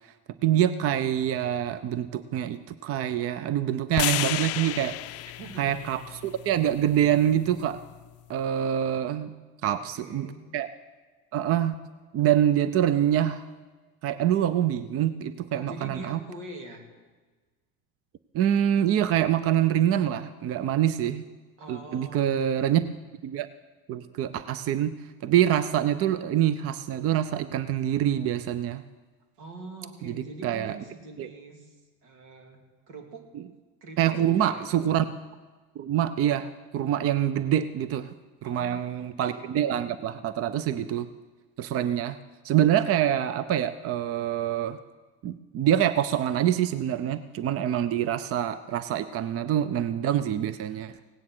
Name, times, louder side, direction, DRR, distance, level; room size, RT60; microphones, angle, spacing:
voice 1, 0.4-5.0 5.6-7.8 8.3-9.3 9.6-10.3 10.5-10.7 11.3-11.7 12.1-13.4 14.0-16.2 18.3-21.2 21.7-22.8 23.2-23.5 23.9-24.9 25.2-28.8 30.0-30.8 31.2-31.3 34.0-35.0 35.8-38.1 38.4-41.1 41.6-42.2 42.4-44.8 45.2-51.0, right 10 dB, 45° right, 14 dB, 0.6 m, -25 dB
sound 1, 3.9-8.1, left 17 dB, 45° left, 0.4 m, -33 dB
voice 2, 5.4-5.8 9.8-10.4 15.5-16.9 21.6-22.8 29.4-33.3 33.8-34.6 38.4-39.5, right 2 dB, 85° right, 3 dB, 2.6 m, -44 dB
17.0 x 9.8 x 6.1 m, 1.3 s
supercardioid pair, 95°, 33 cm